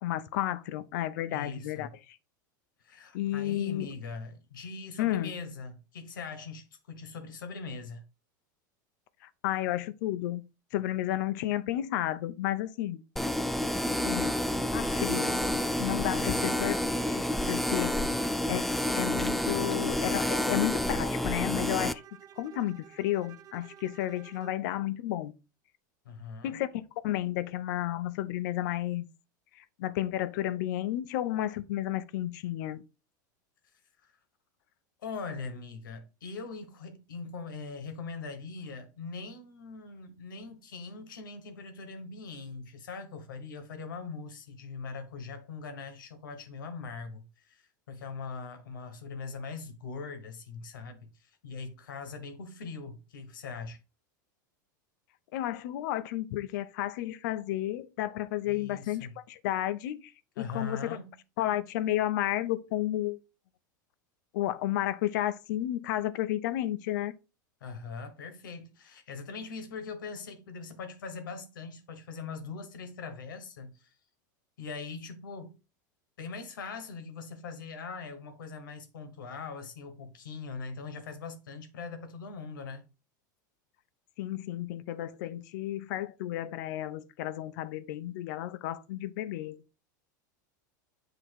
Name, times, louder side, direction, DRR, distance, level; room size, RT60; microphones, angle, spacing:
voice 1, 0.0-2.2 3.1-3.9 5.0-5.3 9.4-10.4 10.7-13.0 14.0-14.3 14.7-15.4 15.8-17.9 18.5-18.6 18.9-22.0 22.4-25.3 26.4-29.1 29.5-32.8 55.3-60.1 60.4-61.0 61.4-63.2 64.3-67.1 84.2-89.6, left 13 dB, 70° left, 0.6 m, -32 dB
voice 2, 1.3-1.9 2.8-8.0 16.1-16.5 17.8-18.2 26.0-26.6 34.0-34.1 35.0-53.8 58.4-59.2 60.4-61.1 67.6-73.9 74.6-75.5 76.2-82.8, left 4 dB, 90° left, 1.4 m, -41 dB
sound 1, 13.2-21.9, left 1 dB, ahead, 0.3 m, -29 dB
Bowed string instrument, 21.3-24.7, right 10 dB, 35° right, 0.6 m, -51 dB
8.1 x 2.9 x 4.6 m
supercardioid pair, 115°, 10 cm